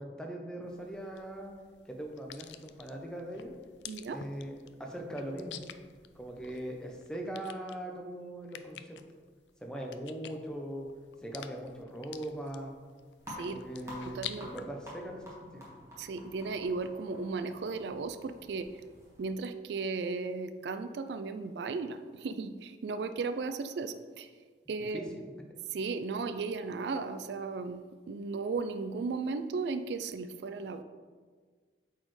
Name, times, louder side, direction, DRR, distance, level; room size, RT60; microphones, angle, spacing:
voice 1, 0.0-1.5 1.9-3.5 4.1-5.6 6.2-9.0 9.6-10.9 11.2-12.7 13.4-15.7 24.9-25.1, right 1 dB, 5° left, 1 dB, 0.7 m, -40 dB
sound 1, 0.7-14.6, left 10 dB, 80° left, 0.4 m, -50 dB
voice 2, 3.9-4.2 13.4-13.6 14.0-14.5 16.0-18.7 19.2-24.3 24.7-25.1 25.7-30.8, right 4 dB, 75° right, 11 dB, 0.3 m, -35 dB
sound 2, 13.2-19.3, left 1 dB, 15° right, 1.5 m, -50 dB
8.6 x 4.2 x 3.2 m, 1.6 s
head